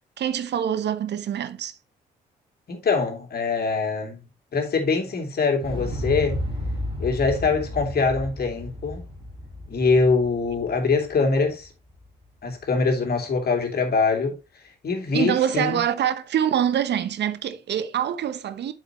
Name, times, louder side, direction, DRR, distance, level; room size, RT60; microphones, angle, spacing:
voice 1, 0.2-1.7 15.1-18.7, right 9 dB, 60° right, 0.8 m, -25 dB
voice 2, 2.7-4.3 4.5-6.4 7.0-9.0 9.7-11.7 12.4-14.4 14.8-15.8, left 4 dB, 50° left, 2.8 m, -23 dB
Explosion, 5.6-11.7 12.0-12.1, left 1 dB, 25° right, 4.5 m, -33 dB
8.0 x 6.7 x 3.0 m
hypercardioid pair, 45°, 20 cm